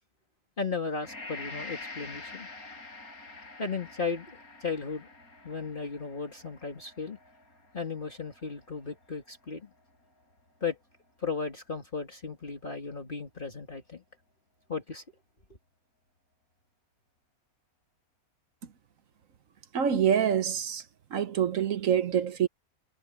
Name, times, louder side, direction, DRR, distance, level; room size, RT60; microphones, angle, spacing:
voice 1, 0.6-2.5 3.6-4.3 4.6-5.1 5.4-7.2 7.7-9.7 10.6-10.8 11.2-14.0 14.7-15.0, left 5 dB, 35° left, 2.2 m, -35 dB
Gong, 1.0-10.2, left 3 dB, 85° left, 7.5 m, -46 dB
voice 2, 19.7-20.8 21.1-22.5, right 8 dB, 70° right, 1.4 m, -26 dB
omnidirectional pair, 1.5 m